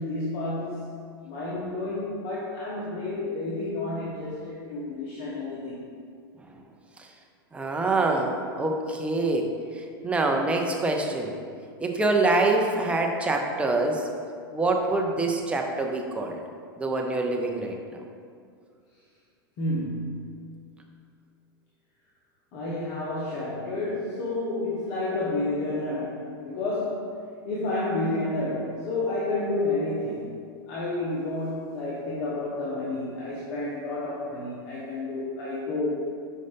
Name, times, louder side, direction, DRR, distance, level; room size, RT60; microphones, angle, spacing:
voice 1, 0.0-5.8 19.6-20.7 22.5-27.2 27.4-30.4 30.7-36.0, left 2 dB, 50° left, -6 dB, 1.1 m, -30 dB
voice 2, 7.5-11.3 11.8-14.1 14.5-16.4 16.8-18.0, right 2 dB, 10° right, 1 dB, 0.6 m, -25 dB
5.4 x 5.2 x 3.4 m, 2.2 s
hypercardioid pair, 115°, 13 cm